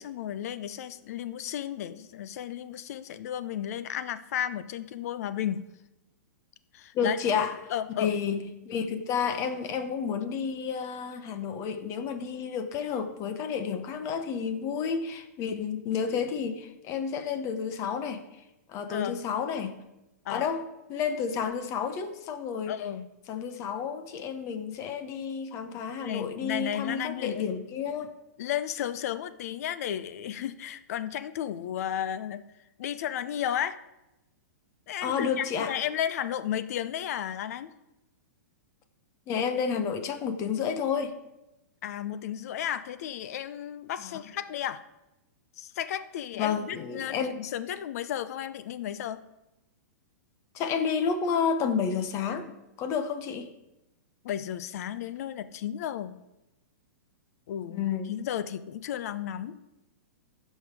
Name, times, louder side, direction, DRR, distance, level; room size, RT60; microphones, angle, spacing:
voice 1, 0.0-5.6 6.7-7.2 7.7-8.2 18.9-19.2 20.2-20.5 22.7-23.1 26.0-27.4 28.4-32.4 32.8-33.8 34.9-37.7 41.8-44.8 45.6-49.2 54.2-56.2 57.5-59.6, left 10 dB, 60° left, 13 dB, 0.7 m, -33 dB
voice 2, 6.9-7.5 8.0-18.2 18.7-19.8 20.3-22.8 23.3-28.1 35.0-35.7 39.3-41.1 44.0-44.1 46.3-47.4 50.5-53.5 57.7-58.1, left 6 dB, 30° left, 9 dB, 1.0 m, -30 dB
15.0 x 5.6 x 4.9 m, 0.94 s
hypercardioid pair, 140°, 9 cm